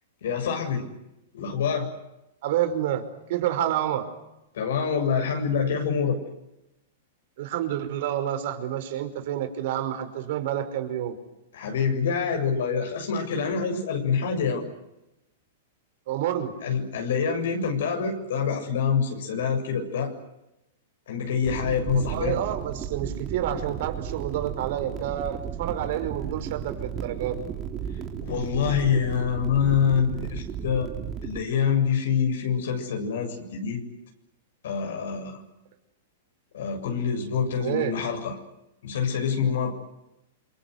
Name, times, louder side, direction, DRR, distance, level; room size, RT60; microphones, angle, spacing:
voice 1, 0.2-0.8 1.3-1.9 4.5-6.2 11.5-14.6 16.6-20.1 21.1-22.4 28.2-30.9 31.2-33.8 34.6-35.4 36.5-38.4 38.8-39.7, left 6 dB, 75° left, 3 dB, 7.4 m, -26 dB
voice 2, 2.4-3.0 3.3-4.1 7.4-11.2 16.1-16.5 22.0-27.4 37.6-37.9, right 11 dB, 60° right, 9 dB, 5.2 m, -28 dB
sound 1, 21.4-31.4, right 8 dB, 30° right, 3.6 m, -34 dB
28.5 x 24.5 x 8.2 m, 0.89 s
hypercardioid pair, 120°, 0 cm